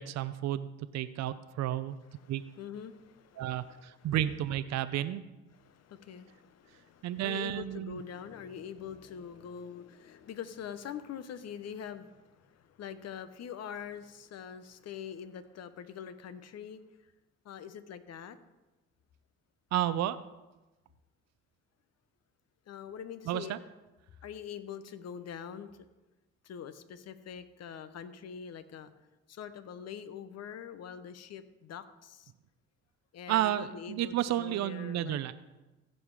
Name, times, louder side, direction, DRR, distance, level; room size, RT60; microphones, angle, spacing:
voice 1, 0.0-2.0 2.3-2.4 3.4-5.2 7.0-8.0 19.7-20.2 23.3-23.6 33.3-35.3, right 12 dB, 65° right, 13 dB, 0.6 m, -32 dB
voice 2, 2.1-4.1 5.5-16.8 17.4-18.4 22.7-23.5 24.2-25.9 26.4-28.9 29.3-32.3 33.1-35.2, left 8 dB, 60° left, 12 dB, 0.9 m, -44 dB
15.5 x 5.5 x 4.8 m, 1.1 s
supercardioid pair, 70°, 30 cm